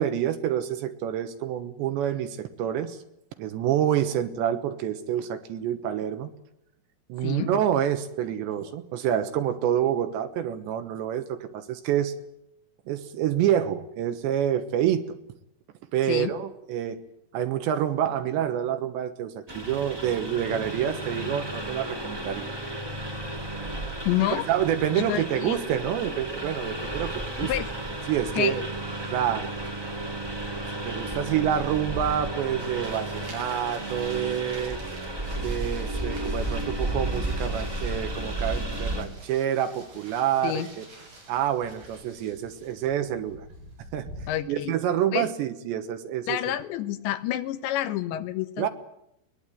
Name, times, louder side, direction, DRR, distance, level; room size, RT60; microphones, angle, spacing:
voice 1, 0.0-3.0 3.4-6.3 7.1-12.1 12.9-15.2 15.9-17.0 17.3-22.5 24.3-27.5 28.1-28.7 29.1-29.5 30.8-34.8 35.3-40.8 41.3-43.5 43.9-44.1 44.5-46.4 48.6-48.7, right 10 dB, 75° right, 9 dB, 3.2 m, -27 dB
voice 2, 7.2-7.5 16.1-16.3 24.0-24.5 24.9-25.6 27.4-27.7 28.3-28.6 40.4-40.7 44.3-44.8 45.1-45.3 46.3-48.7, left 13 dB, 70° left, 10 dB, 3.3 m, -28 dB
Engine, 19.5-39.0, right 1 dB, 15° right, 0.9 m, -33 dB
sound 1, 32.6-44.3, right 1 dB, 45° right, 9.1 m, -47 dB
22.0 x 20.5 x 9.3 m, 0.80 s
omnidirectional pair, 5.7 m